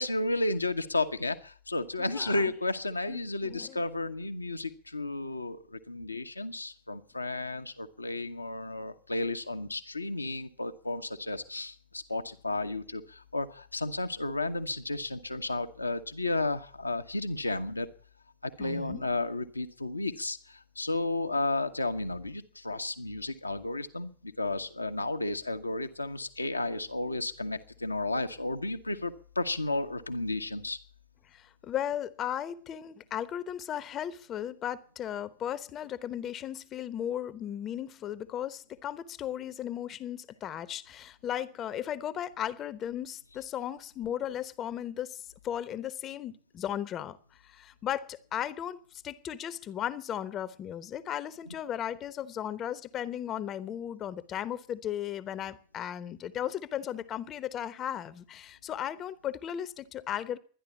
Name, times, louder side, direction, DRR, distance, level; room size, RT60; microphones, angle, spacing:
voice 1, 0.0-17.9 18.4-30.8, left 2 dB, 85° left, 1.1 m, -33 dB
voice 2, 2.0-2.4 3.1-3.8 18.6-19.0 31.2-47.2 47.4-60.4, left 10 dB, 30° left, 1.0 m, -36 dB
12.5 x 10.5 x 8.3 m
figure-of-eight pair, 90°, 0 cm